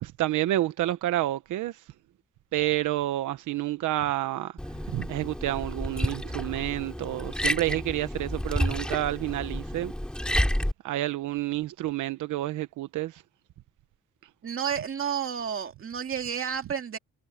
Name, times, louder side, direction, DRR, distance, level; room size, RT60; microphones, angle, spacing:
voice 1, 0.0-1.8 2.5-4.6 4.9-9.9 10.8-13.2, right 15 dB, 80° right, 1.0 m, -29 dB
Liquid, 4.6-10.7, equal, 5° left, 3.1 m, -30 dB
voice 2, 14.4-17.0, right 8 dB, 45° right, 2.6 m, -31 dB
cardioid pair, 90°, 30 cm